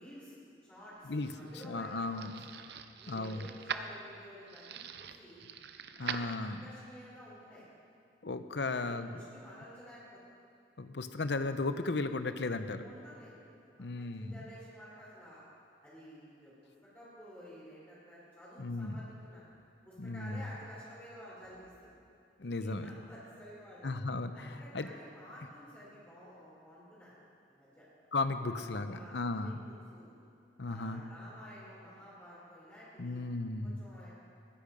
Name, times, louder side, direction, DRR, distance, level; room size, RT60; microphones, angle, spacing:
voice 1, 0.0-2.3 3.0-5.4 6.0-7.7 8.6-10.2 12.8-13.3 13.6-15.4 15.8-19.4 19.8-22.0 22.4-23.9 24.3-27.2 27.5-27.9 28.5-28.6 28.9-30.1 30.6-33.2 33.6-34.1, equal, 10° left, -10 dB, 4.3 m, -52 dB
sound 1, 0.9-6.9, right 6 dB, 65° right, 0.7 m, -44 dB
voice 2, 1.6-2.3 3.1-3.5 6.0-6.6 8.2-9.2 10.8-12.8 13.8-14.4 18.6-19.0 20.0-20.4 22.4-22.9 23.8-24.9 28.1-29.6 30.6-31.0 33.0-33.8, left 3 dB, 70° left, 10 dB, 0.8 m, -35 dB
20.5 x 10.5 x 5.3 m, 2.5 s
head